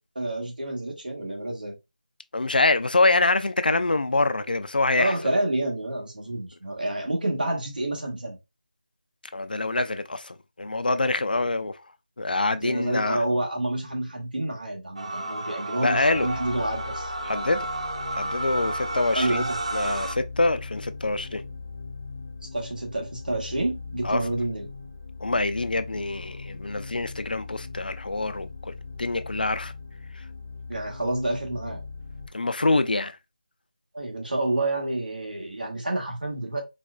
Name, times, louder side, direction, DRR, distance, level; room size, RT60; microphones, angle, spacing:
voice 1, 0.1-1.8 4.9-8.4 12.6-17.1 19.1-19.6 22.5-24.6 30.7-31.8 33.9-36.6, right 1 dB, 75° right, 1.3 m, -28 dB
voice 2, 2.3-5.1 9.3-11.8 12.2-13.2 15.8-16.3 17.2-17.7 18.1-19.4 19.7-21.4 24.0-24.2 25.2-28.7 29.0-29.7 30.1-30.2 32.3-33.2, left 2 dB, 85° left, 0.4 m, -25 dB
sound 1, 15.0-20.1, right 2 dB, 45° right, 0.4 m, -31 dB
sound 2, 15.8-32.3, left 4 dB, 20° left, 0.6 m, -40 dB
4.2 x 2.3 x 2.3 m
figure-of-eight pair, 175°, 5 cm